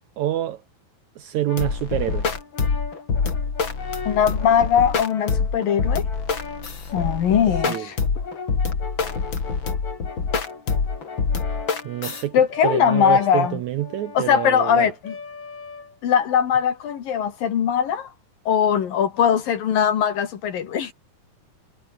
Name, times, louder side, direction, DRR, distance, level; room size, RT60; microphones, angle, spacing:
voice 1, 0.2-0.6 1.2-2.3 7.7-7.9 11.8-12.4 12.6-14.9, right 13 dB, 70° right, 1.8 m, -26 dB
Brass instrument, 1.5-16.3, left 4 dB, 50° left, 6.2 m, -38 dB
sound 1, 1.6-12.2, left 5 dB, 35° left, 3.4 m, -25 dB
voice 2, 4.1-6.0 6.9-8.0 12.3-13.6 14.2-15.1 16.0-18.1 18.5-20.9, left 8 dB, 70° left, 3.9 m, -20 dB
omnidirectional pair, 4.1 m